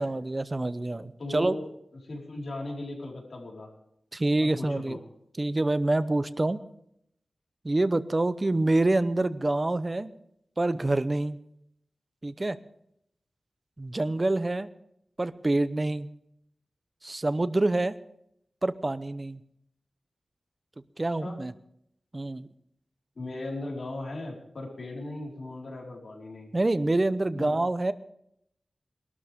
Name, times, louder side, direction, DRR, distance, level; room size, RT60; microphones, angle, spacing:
voice 1, 0.0-1.6 4.1-5.0 5.4-6.6 7.6-10.1 10.6-11.4 12.2-12.6 13.8-14.7 15.2-16.1 17.0-17.9 18.6-19.4 21.0-21.5 22.1-22.5 26.5-27.9, right 2 dB, 30° right, 13 dB, 0.8 m, -26 dB
voice 2, 1.2-1.7 2.0-3.7 4.4-5.0 21.2-21.4 23.1-26.5 27.3-27.6, left 2 dB, 70° left, -2 dB, 4.9 m, -37 dB
21.5 x 12.5 x 3.7 m, 0.74 s
wide cardioid pair, 85°, 0 cm